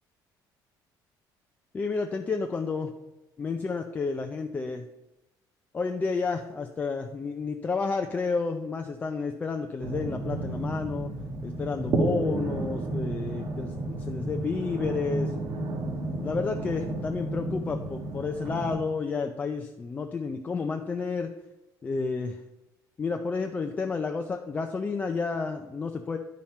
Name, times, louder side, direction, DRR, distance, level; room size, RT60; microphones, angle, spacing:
voice 1, 1.7-2.9 3.4-4.9 5.7-11.1 11.4-15.3 16.2-21.3 21.8-22.4 23.0-26.2, left 4 dB, 20° left, 4 dB, 0.4 m, -31 dB
sound 1, 9.8-18.8, right 2 dB, 45° right, 1.2 m, -32 dB
10.5 x 5.7 x 4.3 m, 0.95 s
cardioid pair, 175°, 8 cm